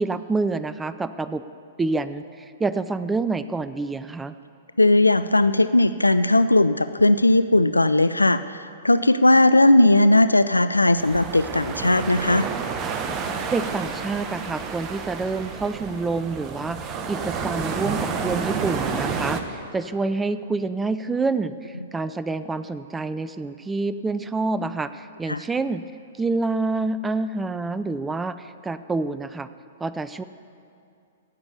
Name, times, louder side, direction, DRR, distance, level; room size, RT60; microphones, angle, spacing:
voice 1, 0.0-1.4 1.8-4.4 13.5-25.8 26.2-29.5 29.8-30.2, right 3 dB, 10° right, 13 dB, 0.3 m, -27 dB
voice 2, 4.8-12.5 25.3-25.4, left 2 dB, 85° left, 13 dB, 0.3 m, -18 dB
sound 1, 11.0-19.4, right 5 dB, 25° right, 0.9 m, -30 dB
17.5 x 7.0 x 6.8 m, 2.4 s
figure-of-eight pair, 110°, 0 cm